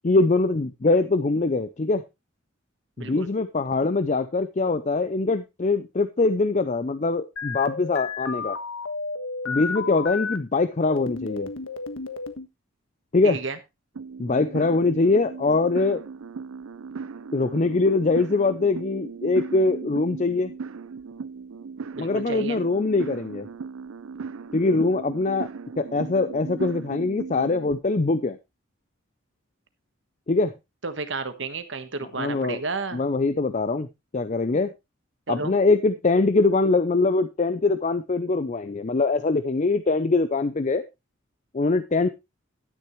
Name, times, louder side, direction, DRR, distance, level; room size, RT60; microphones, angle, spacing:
voice 1, 0.0-2.0 3.0-8.6 9.5-11.5 13.1-13.4 14.2-16.0 17.3-20.5 22.0-23.5 24.5-25.5 25.8-28.4 30.3-30.5 32.2-32.6 32.9-34.7 35.3-40.8 41.5-42.1, left 3 dB, 35° left, 11 dB, 0.5 m, -23 dB
voice 2, 3.0-3.3 13.2-13.6 21.9-22.6 30.8-33.0 35.3-35.6, right 3 dB, 65° right, 10 dB, 1.4 m, -32 dB
sound 1, 7.4-10.4 10.9-12.5, left 4 dB, 80° left, 1.4 m, -32 dB
sound 2, 13.9-27.7, right 5 dB, 90° right, 0.5 m, -37 dB
11.5 x 10.0 x 3.1 m, 0.24 s
head